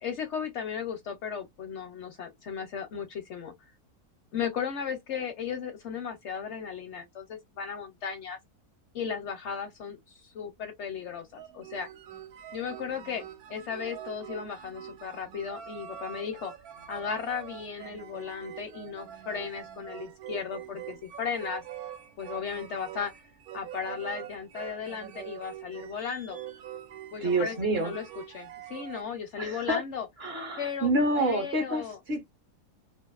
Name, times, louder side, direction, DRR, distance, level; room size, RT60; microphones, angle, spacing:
voice 1, 0.0-3.5 4.3-8.4 8.9-11.9 12.5-13.2 13.5-16.5 16.9-21.6 22.2-23.1 23.5-26.4 27.1-28.0 28.3-30.1 30.6-32.0, left 7 dB, 65° left, 0.7 m, -36 dB
sound 1, 11.3-29.0, right 11 dB, 75° right, 1.0 m, -44 dB
voice 2, 27.2-27.9 29.4-29.8 30.2-32.2, right 1 dB, 50° right, 0.8 m, -28 dB
2.7 x 2.4 x 2.3 m
omnidirectional pair, 1.6 m